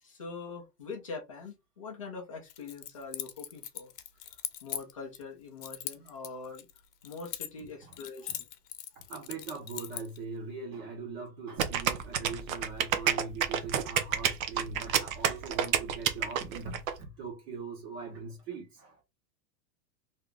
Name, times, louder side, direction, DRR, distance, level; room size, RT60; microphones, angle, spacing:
voice 1, 0.0-3.9 4.6-6.7 7.0-8.5, left 4 dB, 25° left, 0.3 m, -43 dB
Keys jangling, 2.5-5.2 5.6-7.7 7.9-10.2, left 12 dB, 70° left, 0.8 m, -40 dB
voice 2, 7.6-8.0 8.3-8.4 8.9-19.0, right 4 dB, 40° right, 1.0 m, -41 dB
sound 1, 11.6-16.9, right 9 dB, 55° right, 0.7 m, -29 dB
2.8 x 2.4 x 3.4 m
supercardioid pair, 170°, 49 cm